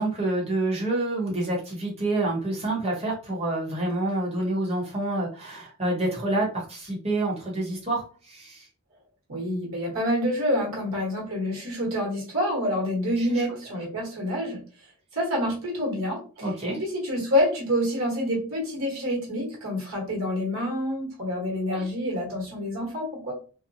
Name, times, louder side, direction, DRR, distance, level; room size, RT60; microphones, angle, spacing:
voice 1, 0.0-8.7 13.2-13.4 16.4-16.8 21.7-21.8, right 2 dB, 30° right, -3 dB, 1.0 m, -28 dB
voice 2, 9.3-14.6 15.1-23.3, equal, 65° right, -3 dB, 1.1 m, -27 dB
2.8 x 2.1 x 2.6 m, 0.37 s
head